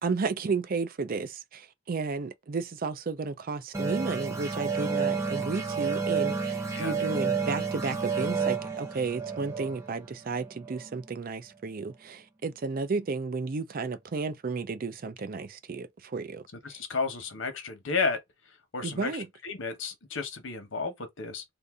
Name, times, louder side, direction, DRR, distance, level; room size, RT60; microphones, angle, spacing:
voice 1, 0.0-16.4 18.8-19.3, right 4 dB, 50° right, 0.5 m, -33 dB
sound 1, 3.7-11.0, right 5 dB, 15° right, 0.8 m, -31 dB
voice 2, 16.6-18.2 18.7-21.4, left 4 dB, 75° left, 1.0 m, -32 dB
2.6 x 2.6 x 3.5 m
head